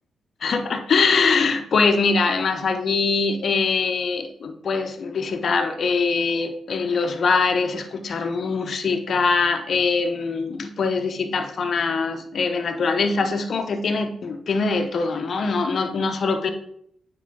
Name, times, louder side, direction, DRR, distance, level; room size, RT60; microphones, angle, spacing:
voice 1, 0.4-16.5, left 4 dB, 55° left, 5 dB, 0.9 m, -23 dB
9.1 x 4.8 x 3.8 m, 0.69 s
cardioid pair, 95°, 0 cm